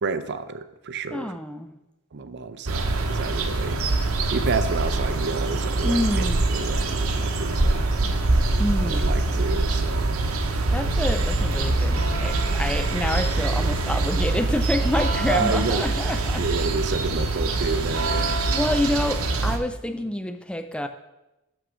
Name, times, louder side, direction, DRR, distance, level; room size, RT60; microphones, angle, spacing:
voice 1, 0.0-1.3 2.1-3.8 4.3-7.9 8.9-10.1 15.3-15.9 16.4-18.5, right 4 dB, 55° right, 11 dB, 0.5 m, -30 dB
voice 2, 1.1-1.7 5.8-6.5 8.6-9.1 10.7-16.5 18.2-20.9, left 1 dB, 5° left, 8 dB, 0.4 m, -27 dB
park birds church bells atmo MS, 2.7-19.6, right 2 dB, 90° right, 0.8 m, -24 dB
6.3 x 6.3 x 6.0 m, 0.97 s
head